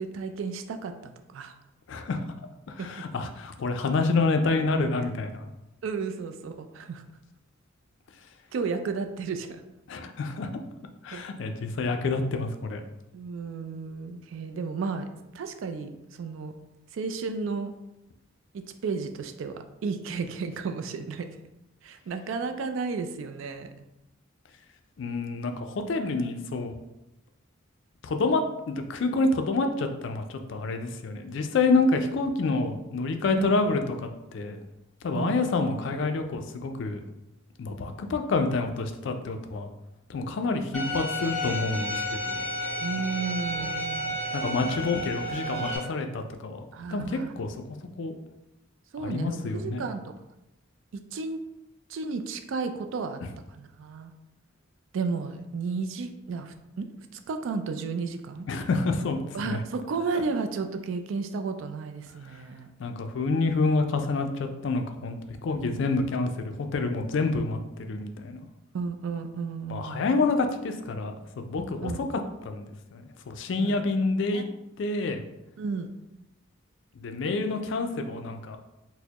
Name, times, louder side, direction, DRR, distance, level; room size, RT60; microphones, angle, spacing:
voice 1, 0.0-1.5 2.8-2.9 5.8-7.0 8.5-9.6 11.1-11.3 13.1-15.1 15.3-16.5 16.9-17.7 18.5-21.3 21.8-23.7 33.3-33.6 35.1-35.5 42.8-44.2 46.7-47.3 48.9-50.1 50.9-51.4 51.9-53.2 53.5-54.1 54.9-56.9 57.1-58.5 59.3-62.7 65.6-65.9 68.7-70.0 71.8-72.1 73.6-73.9 74.3-74.5 75.6-75.9, right 4 dB, 70° right, 7 dB, 0.3 m, -33 dB
voice 2, 1.9-2.2 2.7-5.5 9.9-10.5 11.0-12.8 25.0-26.7 28.0-33.9 34.3-34.6 35.0-37.0 37.6-39.7 40.1-42.5 44.3-48.1 49.0-49.9 53.2-53.3 58.5-59.6 62.3-62.4 62.8-68.4 69.7-71.1 71.5-72.1 72.4-74.4 74.8-75.2 77.0-78.6, left 3 dB, 60° left, 6 dB, 0.3 m, -28 dB
Bowed string instrument, 40.7-45.8, equal, 5° left, 0.9 m, -31 dB
4.2 x 2.0 x 2.8 m, 0.93 s
head